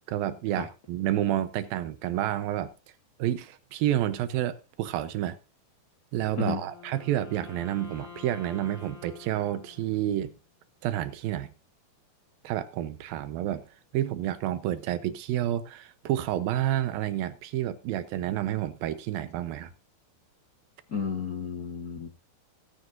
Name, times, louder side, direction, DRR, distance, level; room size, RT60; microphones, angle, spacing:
voice 1, 0.1-2.7 3.2-5.4 6.1-10.3 10.8-11.5 12.4-13.6 13.9-19.7, right 12 dB, 80° right, 2.6 m, -29 dB
Wind instrument woodwind instrument, 6.1-10.4, left 6 dB, 35° left, 5.6 m, -48 dB
voice 2, 20.9-22.1, left 5 dB, 75° left, 0.8 m, -32 dB
19.0 x 9.6 x 2.6 m
omnidirectional pair, 4.2 m